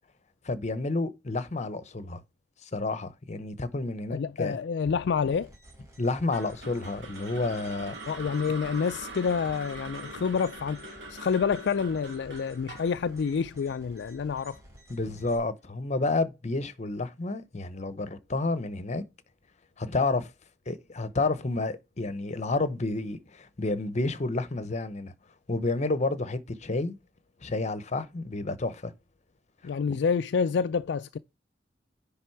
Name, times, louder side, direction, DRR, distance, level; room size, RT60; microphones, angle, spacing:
voice 1, 0.4-2.2 2.7-4.6 6.0-8.0 14.9-19.0 19.8-20.3 20.7-25.1 25.5-27.0 27.4-28.9, left 3 dB, 40° left, 0.9 m, -30 dB
voice 2, 4.1-5.5 8.1-14.6 29.6-31.2, left 6 dB, 70° left, 0.4 m, -28 dB
sound 1, 5.3-15.4, equal, 20° right, 3.4 m, -53 dB
sound 2, 6.3-14.5, right 2 dB, 70° right, 2.0 m, -43 dB
10.0 x 3.5 x 4.6 m
head